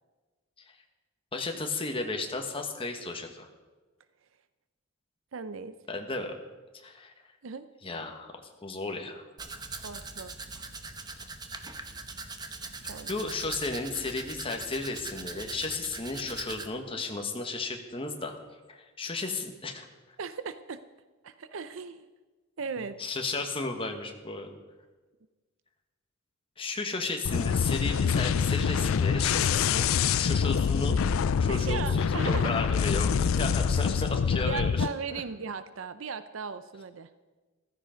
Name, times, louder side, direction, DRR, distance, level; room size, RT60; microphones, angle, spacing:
voice 1, 1.3-3.5 5.9-6.3 6.8-7.1 7.8-9.2 13.1-18.4 18.7-19.9 23.0-24.6 26.6-29.9 30.1-31.0 31.4-34.8 35.1-35.2, left 3 dB, 25° left, 4 dB, 1.4 m, -34 dB
voice 2, 5.3-5.8 7.4-7.7 9.8-10.3 12.9-13.1 20.2-20.8 21.2-22.1 22.6-23.0 31.5-32.5 34.4-37.1, right 5 dB, 70° right, 12 dB, 0.6 m, -37 dB
Domestic sounds home sounds, 9.4-16.7, right 3 dB, 20° right, 0.9 m, -41 dB
sound 1, 27.2-34.9, left 6 dB, 80° left, 0.4 m, -26 dB
15.0 x 13.0 x 5.1 m, 1.3 s
head